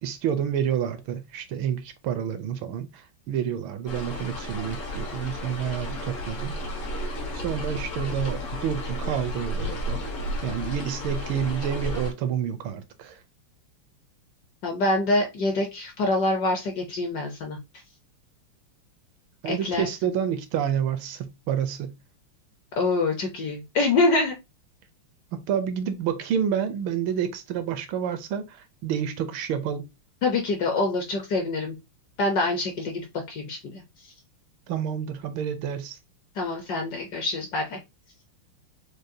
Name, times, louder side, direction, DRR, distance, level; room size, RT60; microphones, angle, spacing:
voice 1, 0.0-6.6 7.3-10.0 10.4-13.2 19.4-21.9 25.3-29.9 34.7-36.0, right 8 dB, 75° right, 1.3 m, -29 dB
sound 1, 3.9-12.1, left 1 dB, 85° left, 2.2 m, -32 dB
voice 2, 14.6-17.6 19.4-19.9 22.7-24.4 30.2-31.8 32.2-34.1 36.4-37.8, left 2 dB, 65° left, 1.0 m, -25 dB
6.3 x 2.3 x 2.6 m
omnidirectional pair, 2.4 m